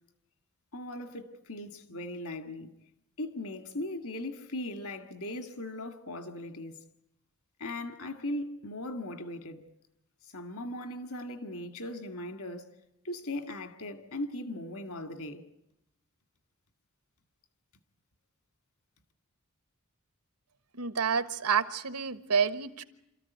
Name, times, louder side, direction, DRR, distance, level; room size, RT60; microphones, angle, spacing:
voice 1, 0.7-2.7 3.2-6.8 7.6-9.7 10.3-12.7 13.0-15.4, left 1 dB, 70° left, 2.1 m, -38 dB
voice 2, 20.7-22.8, right 6 dB, 85° right, 1.4 m, -29 dB
27.5 x 14.5 x 9.5 m
head